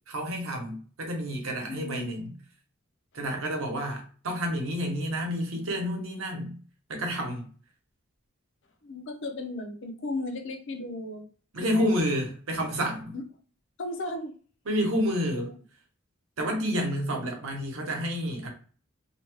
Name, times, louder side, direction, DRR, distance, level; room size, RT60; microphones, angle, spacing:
voice 1, 0.1-2.3 3.1-6.6 6.9-7.5 11.5-13.1 14.7-15.5 16.4-18.5, equal, 70° right, 0.9 m, -29 dB
voice 2, 1.7-2.1 8.8-11.3 11.6-11.9 13.1-13.2 13.8-14.3 15.5-15.6, left 2 dB, 60° left, 0.5 m, -35 dB
2.7 x 2.1 x 3.0 m
head